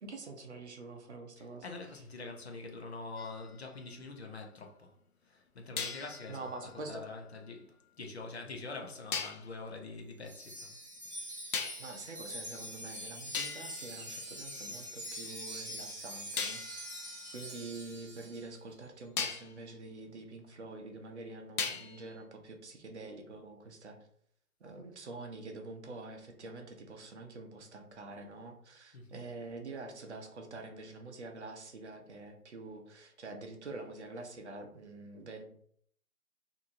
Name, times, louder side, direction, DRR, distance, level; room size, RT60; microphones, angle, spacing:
voice 1, 0.0-1.6 6.3-7.0 11.8-16.6 17.3-24.0 24.6-35.5, right 3 dB, 50° right, 0.6 m, -46 dB
voice 2, 1.4-4.9 5.2-10.8 28.9-29.2, left 3 dB, 50° left, 0.6 m, -45 dB
sound 1, 3.2-4.6 5.8-7.9 9.1-9.5 11.5-12.1 12.8-12.9 13.3-15.0 16.4-18.5 19.2-19.6 21.6-22.2, left 5 dB, 85° left, 0.7 m, -41 dB
Wind chime, 10.3-18.5, equal, 15° right, 0.7 m, -44 dB
2.8 x 2.7 x 2.5 m
hypercardioid pair, 155°, 44 cm